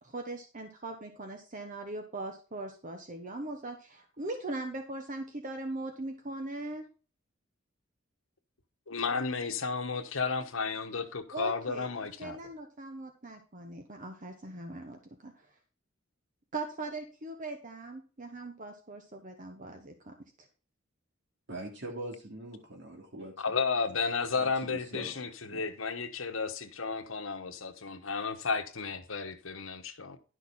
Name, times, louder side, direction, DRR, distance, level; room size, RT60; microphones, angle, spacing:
voice 1, 0.0-6.9 11.3-11.9 12.2-15.5 16.5-20.1, right 2 dB, 40° right, 1.2 m, -40 dB
voice 2, 8.9-12.4 23.4-30.2, left 4 dB, 80° left, 1.3 m, -33 dB
voice 3, 21.5-23.3 24.4-25.7, right 1 dB, 60° right, 2.9 m, -42 dB
11.5 x 6.3 x 4.2 m
head